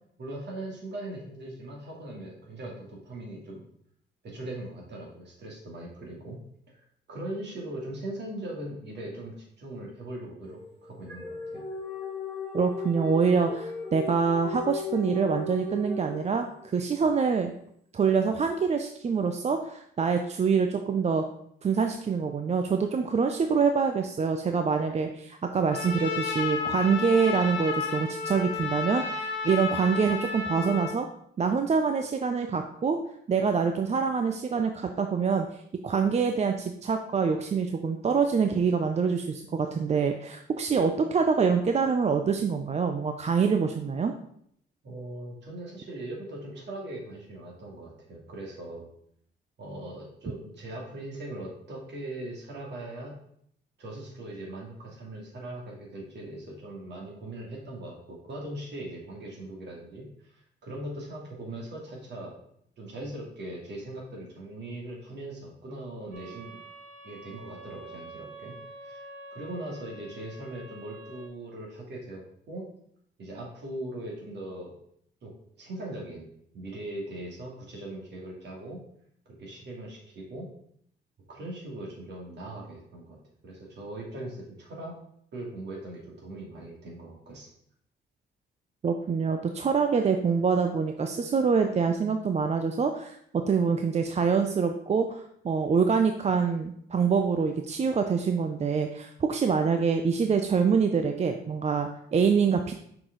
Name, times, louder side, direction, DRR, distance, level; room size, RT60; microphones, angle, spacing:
voice 1, 0.2-3.6 4.2-6.4 6.7-11.7 44.8-48.9 49.6-53.2 53.8-62.3 62.8-66.6 67.0-69.1 69.3-72.6 73.2-74.7 75.2-75.3 75.6-76.3 76.5-78.8 79.3-80.5 81.3-83.2 83.4-84.9 85.3-87.5, right 1 dB, 60° right, -2 dB, 2.5 m, -40 dB
sound 1, 10.4-16.8, left 3 dB, 10° left, 1.8 m, -36 dB
voice 2, 12.5-17.5 17.9-21.2 21.6-31.1 31.4-33.0 33.3-44.1 88.8-93.2 93.5-102.7, right 5 dB, 35° right, 5 dB, 0.5 m, -25 dB
Trumpet, 25.7-31.0, left 5 dB, 70° left, 1.5 m, -32 dB
sound 2, 66.1-71.3, right 2 dB, 80° right, 2.3 m, -46 dB
5.8 x 4.8 x 3.9 m, 0.69 s
cardioid pair, 90°, 20 cm